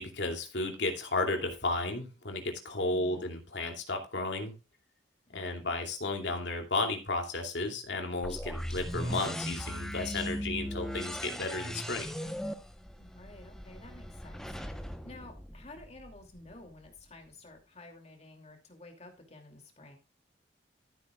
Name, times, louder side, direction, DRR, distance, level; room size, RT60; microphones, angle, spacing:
voice 1, 0.0-4.5 5.3-12.1, left 2 dB, 75° left, 4 dB, 2.7 m, -33 dB
voice 2, 2.9-3.3 5.3-5.7 13.0-20.0, left 2 dB, 35° left, 3 dB, 2.7 m, -52 dB
sound 1, 8.2-16.1, equal, 5° left, 0.9 m, -38 dB
14.0 x 8.3 x 2.4 m, 0.31 s
head